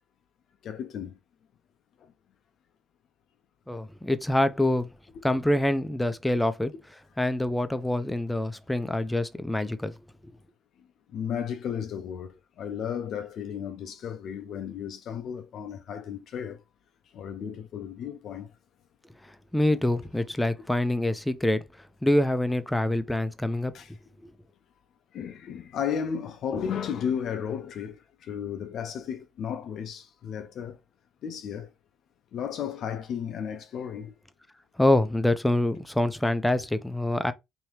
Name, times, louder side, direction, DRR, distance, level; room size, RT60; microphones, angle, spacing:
voice 1, 0.6-1.2 11.1-16.6 17.1-18.5 23.7-23.9 25.1-30.8 31.2-31.7 32.3-34.1, left 8 dB, 60° left, 0.4 m, -34 dB
voice 2, 3.7-4.9 5.2-6.7 7.2-9.9 19.5-21.6 22.0-23.7 24.2-24.3 34.8-37.3, left 1 dB, 10° left, 0.5 m, -25 dB
3.1 x 2.7 x 3.0 m
hypercardioid pair, 60°, 0 cm